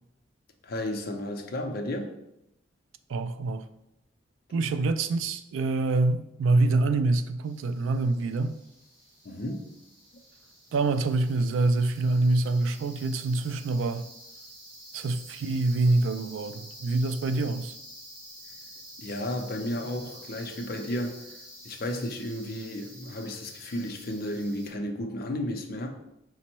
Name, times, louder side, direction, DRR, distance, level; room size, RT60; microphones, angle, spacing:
voice 1, 0.6-2.2 9.2-9.8 19.0-21.4 21.6-25.9, left 1 dB, 50° left, 0.5 m, -33 dB
voice 2, 3.1-3.6 4.5-8.6 10.7-14.1 14.9-17.7, right 2 dB, 85° right, 0.3 m, -26 dB
sound 1, 7.4-24.7, equal, 20° right, 1.5 m, -49 dB
5.1 x 2.1 x 4.3 m
head